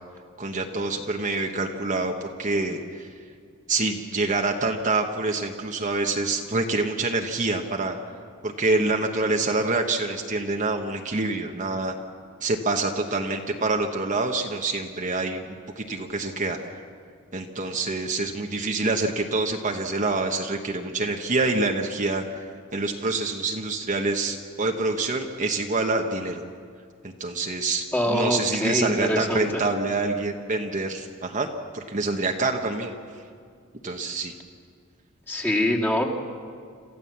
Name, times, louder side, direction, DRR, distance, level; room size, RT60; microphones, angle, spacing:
voice 1, 0.4-3.1 3.7-8.0 8.4-11.9 12.4-16.6 17.3-22.2 22.7-26.4 27.0-31.5 31.7-32.9 33.8-34.3, right 3 dB, 35° right, 3 dB, 1.2 m, -26 dB
voice 2, 27.9-29.5 35.3-36.0, left 1 dB, 10° left, -2 dB, 2.2 m, -24 dB
27.5 x 15.0 x 7.3 m, 2.1 s
head